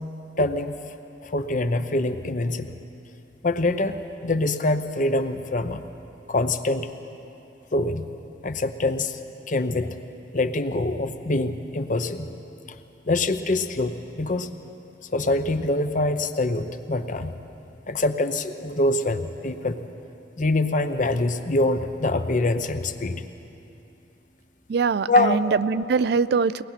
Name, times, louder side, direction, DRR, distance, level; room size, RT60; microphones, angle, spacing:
voice 1, 0.4-0.7 1.2-2.7 3.4-5.8 6.3-6.9 7.7-8.1 8.4-9.2 9.5-9.9 10.3-12.3 13.1-14.5 15.1-17.3 17.9-19.8 20.4-23.2 25.1-25.4, left 2 dB, 45° left, 9 dB, 0.8 m, -24 dB
voice 2, 24.7-26.6, right 5 dB, 60° right, 16 dB, 0.4 m, -22 dB
23.5 x 19.0 x 5.8 m, 2.8 s
head